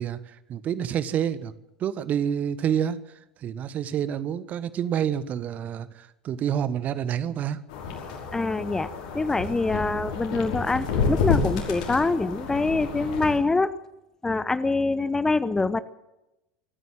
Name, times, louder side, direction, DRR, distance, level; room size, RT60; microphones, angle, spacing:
voice 1, 0.0-1.5 1.8-3.0 3.4-7.6, right 9 dB, 35° right, 15 dB, 1.3 m, -28 dB
sound 1, 7.7-13.4, left 5 dB, 60° left, 5.7 m, -29 dB
voice 2, 8.3-8.9 9.1-13.7 14.2-15.8, left 3 dB, 10° left, 16 dB, 0.9 m, -25 dB
24.5 x 14.0 x 7.6 m, 0.93 s
figure-of-eight pair, 75°, 4 cm